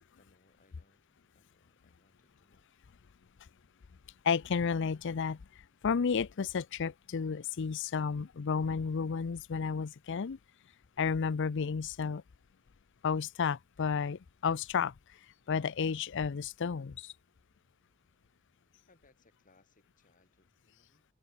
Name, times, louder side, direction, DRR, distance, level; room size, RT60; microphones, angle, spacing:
voice 1, 0.0-2.7 18.9-21.1, left 2 dB, 40° left, 5.9 m, -69 dB
voice 2, 4.3-5.4 5.8-10.4 11.0-12.2 13.0-14.9 15.5-16.9, left 6 dB, 60° left, 0.5 m, -32 dB
head